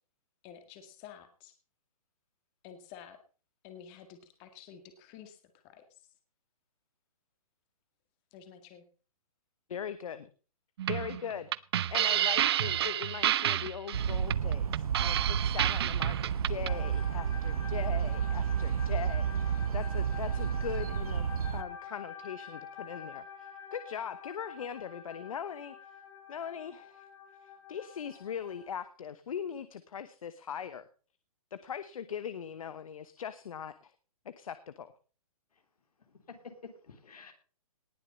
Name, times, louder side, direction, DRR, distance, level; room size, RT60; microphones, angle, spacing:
voice 1, 0.4-1.5 2.6-3.2 3.6-6.0 8.3-8.8, left 8 dB, 25° left, 8 dB, 1.9 m, -51 dB
voice 2, 9.7-10.3 10.9-11.5 11.9-21.3 21.5-26.0 26.3-27.1 27.4-30.8 31.5-33.9 34.2-34.9, left 8 dB, 65° left, 13 dB, 1.0 m, -40 dB
sound 1, 10.8-16.7, right 11 dB, 45° right, 0.5 m, -30 dB
sound 2, 13.9-21.6, right 7 dB, 75° right, 1.2 m, -31 dB
sound 3, 16.7-28.8, left 7 dB, 50° left, 3.7 m, -47 dB
voice 3, 36.1-37.3, left 4 dB, 85° left, 6 dB, 3.4 m, -50 dB
19.0 x 6.8 x 5.3 m, 0.38 s
hypercardioid pair, 155°, 19 cm